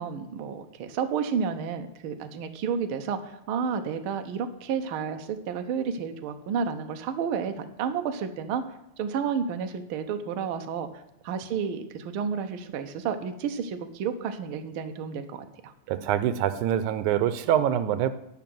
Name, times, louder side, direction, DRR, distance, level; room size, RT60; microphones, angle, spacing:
voice 1, 0.0-8.6 9.0-10.9 11.2-15.7, right 6 dB, 65° right, 7 dB, 1.4 m, -31 dB
voice 2, 15.9-18.1, right 10 dB, 90° right, 12 dB, 2.2 m, -25 dB
11.0 x 5.9 x 7.6 m, 0.85 s
omnidirectional pair, 3.3 m